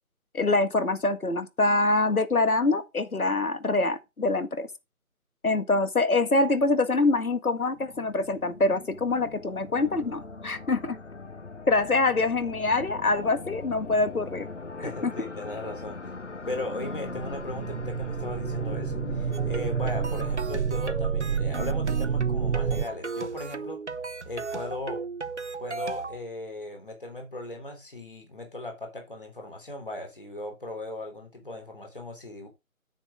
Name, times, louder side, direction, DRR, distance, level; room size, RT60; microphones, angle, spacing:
voice 1, 0.3-4.7 5.4-11.0 11.7-14.5 14.8-15.1, left 3 dB, 80° left, 1.8 m, -25 dB
sound 1, 7.6-20.4, left 3 dB, 55° left, 0.9 m, -40 dB
voice 2, 14.8-16.0 16.5-23.8 24.2-25.0 25.6-32.5, left 2 dB, 35° left, 3.3 m, -37 dB
sound 2, 17.0-22.9, right 7 dB, 90° right, 0.7 m, -29 dB
sound 3, 19.3-26.2, right 4 dB, 55° right, 0.8 m, -36 dB
10.0 x 7.4 x 3.6 m
figure-of-eight pair, 180°, 43 cm